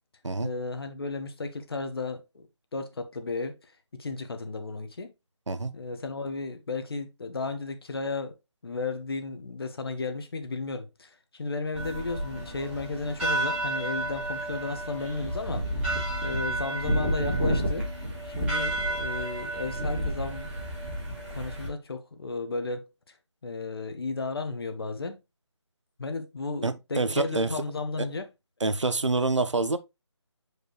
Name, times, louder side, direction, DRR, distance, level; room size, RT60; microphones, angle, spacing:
voice 1, 0.4-2.5 2.7-3.5 3.9-5.1 5.7-8.3 8.6-15.6 16.2-17.9 18.3-20.5 21.3-22.8 23.4-25.2 26.0-28.3, left 3 dB, 55° left, 1.2 m, -34 dB
sound 1, 11.7-21.7, right 1 dB, 5° right, 3.2 m, -30 dB
voice 2, 26.6-27.5 28.6-29.8, right 3 dB, 85° right, 0.8 m, -26 dB
6.6 x 5.0 x 3.0 m
figure-of-eight pair, 160°, 15 cm